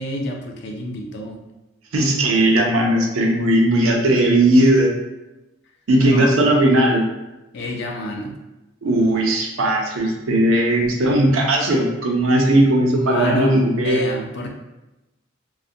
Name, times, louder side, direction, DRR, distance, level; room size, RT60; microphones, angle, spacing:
voice 1, 0.0-1.4 2.2-2.3 6.0-6.5 7.5-8.3 12.9-14.5, left 1 dB, 55° left, 1 dB, 0.4 m, -28 dB
voice 2, 1.9-4.9 5.9-7.0 8.8-14.0, right 1 dB, 75° right, 0 dB, 0.5 m, -17 dB
2.4 x 2.1 x 2.6 m, 1.0 s
head